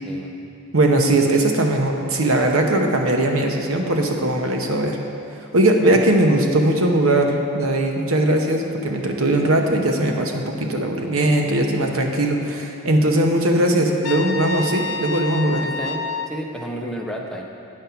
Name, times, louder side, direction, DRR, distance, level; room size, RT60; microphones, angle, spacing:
voice 1, 0.0-0.4 5.9-6.1 15.6-17.4, equal, 5° left, -2 dB, 0.7 m, -32 dB
voice 2, 0.7-5.0 5.5-15.6, right 1 dB, 80° right, 2 dB, 0.9 m, -19 dB
Trumpet, 14.0-16.4, left 4 dB, 55° left, 0.4 m, -28 dB
9.4 x 5.5 x 5.7 m, 2.8 s
head